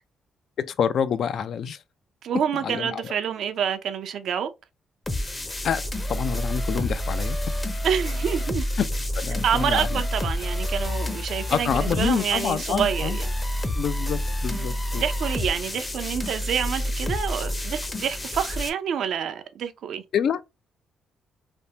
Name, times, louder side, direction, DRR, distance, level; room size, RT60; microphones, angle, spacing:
voice 1, 0.6-1.8 2.6-3.1 5.6-7.4 8.8-8.9 9.2-10.0 11.5-13.2 13.8-15.0 20.1-20.5, left 7 dB, 65° left, 0.3 m, -27 dB
voice 2, 2.2-4.5 7.8-8.7 9.4-13.3 14.5-20.0, right 8 dB, 70° right, 0.4 m, -27 dB
sound 1, 5.1-18.7, left 1 dB, 20° left, 0.6 m, -28 dB
3.4 x 2.1 x 2.7 m
cardioid pair, 90°, 0 cm